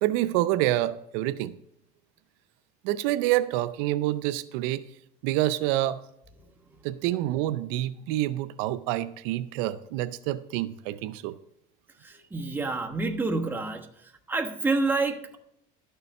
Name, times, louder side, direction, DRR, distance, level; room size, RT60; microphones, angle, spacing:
voice 1, 0.0-1.5 2.8-4.8 5.2-6.0 6.8-11.3, right 15 dB, 80° right, 13 dB, 0.5 m, -27 dB
voice 2, 12.0-13.9 14.3-15.4, right 3 dB, 10° right, 3 dB, 1.1 m, -28 dB
12.0 x 6.8 x 5.3 m, 0.78 s
cardioid pair, 120°, 20 cm